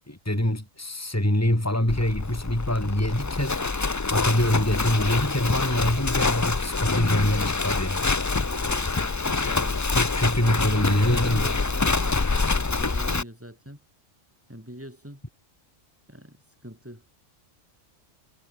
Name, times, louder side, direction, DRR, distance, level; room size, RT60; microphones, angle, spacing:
voice 1, 0.1-3.6 4.1-8.1 9.9-11.5, left 1 dB, 10° left, 3.9 m, -24 dB
Livestock farm animals working animals, 1.9-13.2, left 3 dB, 30° left, 0.3 m, -26 dB
voice 2, 8.4-9.8 10.4-13.8 14.5-15.2 16.1-17.0, equal, 10° right, 6.7 m, -42 dB
omnidirectional pair, 1.3 m